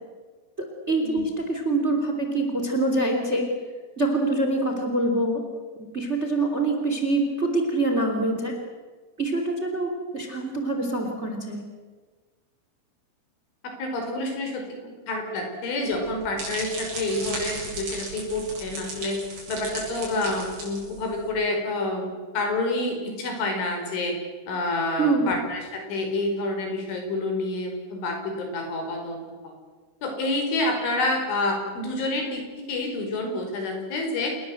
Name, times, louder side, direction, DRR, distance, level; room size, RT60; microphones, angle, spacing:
voice 1, 0.9-3.5 4.0-5.4 5.9-8.6 9.2-11.6 25.0-25.3, right 2 dB, 15° right, 4 dB, 2.8 m, -25 dB
voice 2, 13.6-14.7 15.1-19.2 19.5-24.1 24.5-29.5 30.0-34.3, left 2 dB, 85° left, 3 dB, 7.6 m, -28 dB
sound 1, 15.9-21.3, right 2 dB, 55° right, 9.4 m, -36 dB
28.5 x 21.0 x 7.9 m, 1.4 s
omnidirectional pair, 5.4 m